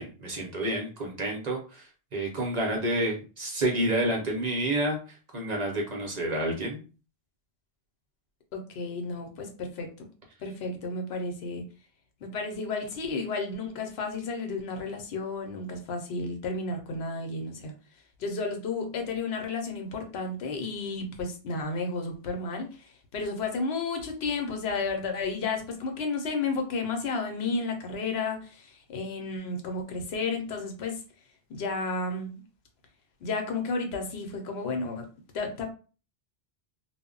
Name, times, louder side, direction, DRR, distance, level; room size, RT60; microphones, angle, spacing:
voice 1, 0.0-1.8 2.1-5.0 5.3-6.8, right 1 dB, 45° right, -1 dB, 0.7 m, -29 dB
voice 2, 8.5-10.1 10.4-11.6 12.2-17.7 18.2-31.0 31.5-32.4 33.2-35.0 35.3-35.7, left 3 dB, 75° left, 4 dB, 0.9 m, -32 dB
2.1 x 2.0 x 3.7 m, 0.36 s
omnidirectional pair, 1.1 m